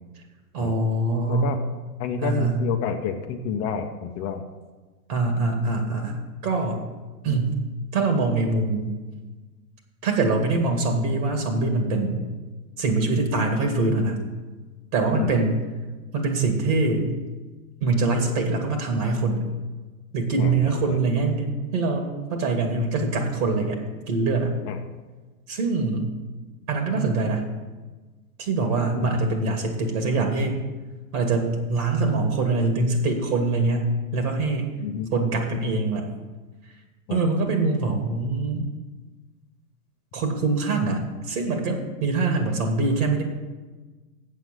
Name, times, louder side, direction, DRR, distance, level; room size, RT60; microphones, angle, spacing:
voice 1, 0.5-1.5 2.2-2.6 5.1-6.8 7.2-7.6 7.9-9.0 10.0-12.2 12.8-14.2 14.9-15.6 16.1-17.1 17.8-19.4 20.1-21.5 21.7-23.8 24.1-24.5 25.5-26.1 26.7-27.5 28.4-30.5 31.1-33.9 34.1-34.7 35.1-36.1 37.1-38.7 40.1-43.2, right 3 dB, 65° right, 3 dB, 2.2 m, -24 dB
voice 2, 2.0-4.4 15.1-15.3 20.4-21.0 24.7-24.8 28.9-29.1 34.8-35.1 37.1-37.2, left 7 dB, 30° left, 5 dB, 0.7 m, -29 dB
8.0 x 7.7 x 7.5 m, 1.3 s
hypercardioid pair, 135°, 48 cm